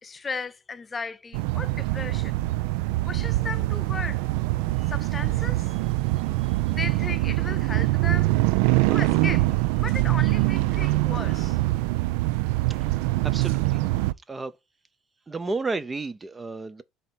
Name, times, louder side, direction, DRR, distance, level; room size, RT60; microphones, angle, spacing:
voice 1, 0.0-2.3 3.0-4.2 4.8-5.9 6.4-8.4 8.9-11.6, left 5 dB, 25° left, 0.6 m, -36 dB
sound 1, 1.3-14.1, right 18 dB, 85° right, 0.3 m, -24 dB
voice 2, 13.3-13.8 14.3-14.5 15.3-16.8, right 3 dB, 20° right, 0.5 m, -31 dB
7.7 x 2.8 x 5.9 m
cardioid pair, 115°, 0 cm